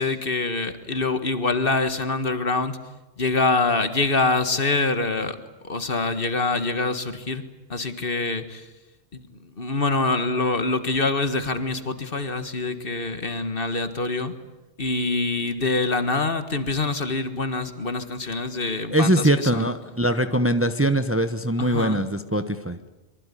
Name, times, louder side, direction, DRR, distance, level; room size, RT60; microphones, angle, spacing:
voice 1, 0.0-2.8 3.2-5.4 5.6-7.4 7.7-8.7 9.1-14.3 14.8-19.7 21.6-22.1, left 3 dB, 55° left, 10 dB, 1.9 m, -25 dB
voice 2, 18.9-22.9, right 1 dB, 15° right, 10 dB, 1.0 m, -22 dB
25.0 x 24.0 x 10.0 m, 1.1 s
omnidirectional pair, 1.2 m